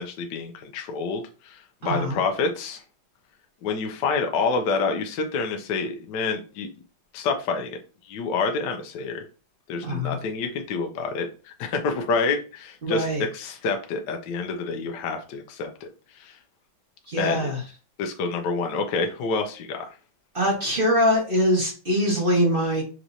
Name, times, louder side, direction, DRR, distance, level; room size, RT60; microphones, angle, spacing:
voice 1, 0.0-2.8 3.6-6.7 7.1-7.8 8.0-9.2 9.7-13.1 13.3-15.9 16.1-16.4 17.2-17.5 18.0-19.9, left 4 dB, 70° left, 4 dB, 1.3 m, -28 dB
voice 2, 1.8-2.2 9.8-10.2 12.8-13.2 17.1-17.6 20.3-22.8, equal, 30° right, -3 dB, 1.3 m, -23 dB
6.0 x 3.0 x 2.7 m, 0.33 s
omnidirectional pair, 2.2 m